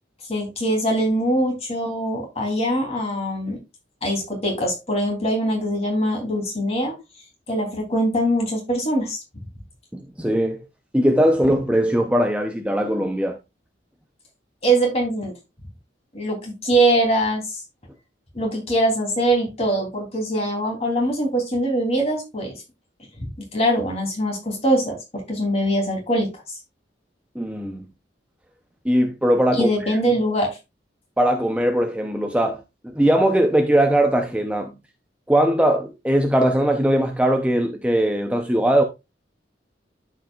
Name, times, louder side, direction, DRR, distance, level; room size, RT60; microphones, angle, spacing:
voice 1, 0.3-3.6 4.0-7.0 7.5-9.2 14.6-15.3 16.1-17.6 18.3-22.5 23.2-23.3 23.5-26.3 29.5-30.6, right 1 dB, 35° left, 3.3 m, -22 dB
voice 2, 9.9-10.6 10.9-13.4 27.3-27.9 28.8-29.7 31.2-34.7 35.3-38.8, right 1 dB, 5° right, 0.7 m, -20 dB
12.5 x 5.3 x 2.4 m
head